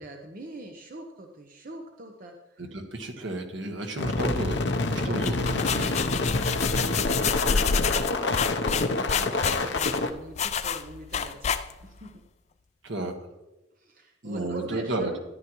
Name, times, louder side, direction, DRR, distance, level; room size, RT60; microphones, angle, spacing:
voice 1, 0.0-2.6 4.9-5.1 5.8-12.2 13.8-15.2, right 1 dB, 45° right, 3 dB, 0.8 m, -43 dB
voice 2, 2.6-5.9 12.8-13.2 14.2-15.2, right 2 dB, 75° right, 3 dB, 1.5 m, -33 dB
sound 1, 4.0-10.1, left 2 dB, 60° left, 0.7 m, -27 dB
sound 2, 5.1-12.0, left 6 dB, 35° left, 0.4 m, -28 dB
13.5 x 10.5 x 3.1 m, 1.0 s
head